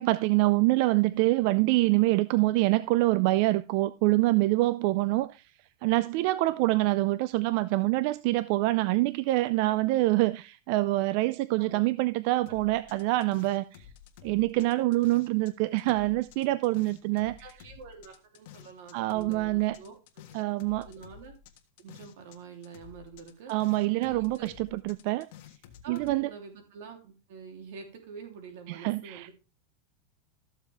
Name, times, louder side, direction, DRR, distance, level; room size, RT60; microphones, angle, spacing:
voice 1, 0.0-5.4 5.8-13.8 14.2-17.4 18.9-19.8 20.3-20.9 23.5-25.3 25.9-26.3 28.7-29.3, right 19 dB, 50° right, 0.4 m, -25 dB
sound 1, 12.5-15.5 15.8-22.4 22.6-26.2, left 10 dB, 60° left, 1.6 m, -51 dB
voice 2, 17.4-20.0 20.3-20.5 20.8-21.3 21.8-23.5 23.9-24.5 25.8-29.3, right 6 dB, 70° right, 3.2 m, -46 dB
13.5 x 7.2 x 3.5 m
supercardioid pair, 150°, 0 cm